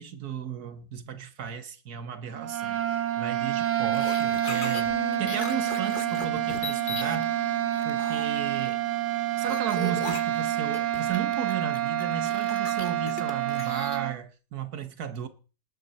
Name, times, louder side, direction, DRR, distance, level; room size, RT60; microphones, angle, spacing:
voice 1, 0.0-7.4 7.9-8.8 9.4-15.3, right 8 dB, 70° right, 1.7 m, -35 dB
sound 1, 2.3-14.2, right 12 dB, 85° right, 1.8 m, -28 dB
sound 2, 3.9-4.8 5.1-7.2 7.7-9.0 9.5-14.0, left 4 dB, 35° left, 1.3 m, -39 dB
Bass guitar, 4.9-11.1, left 11 dB, 45° right, 4.7 m, -46 dB
19.5 x 9.6 x 4.2 m
omnidirectional pair, 1.7 m